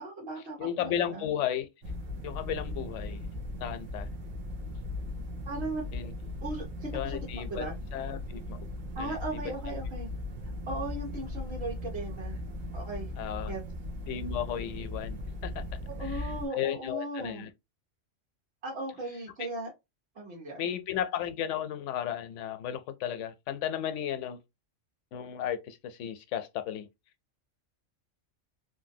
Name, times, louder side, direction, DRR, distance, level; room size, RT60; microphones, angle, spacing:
voice 1, 0.0-1.3 5.5-5.8 6.4-7.2 7.5-7.7 8.9-10.1 10.7-12.4 12.7-13.1 13.5-13.6 15.9-17.5 18.6-19.7 20.1-20.7, right 2 dB, 55° right, 1.6 m, -37 dB
voice 2, 0.6-1.7 2.2-3.2 3.6-4.1 5.9-6.1 6.9-7.7 7.9-8.6 9.0-9.2 9.7-9.8 13.2-13.6 14.1-15.6 16.0-17.5 20.6-24.4 25.1-26.9, left 10 dB, 75° left, 0.9 m, -34 dB
sound 1, 1.8-16.5, left 1 dB, 80° right, 1.2 m, -38 dB
3.1 x 2.6 x 2.6 m
omnidirectional pair, 1.3 m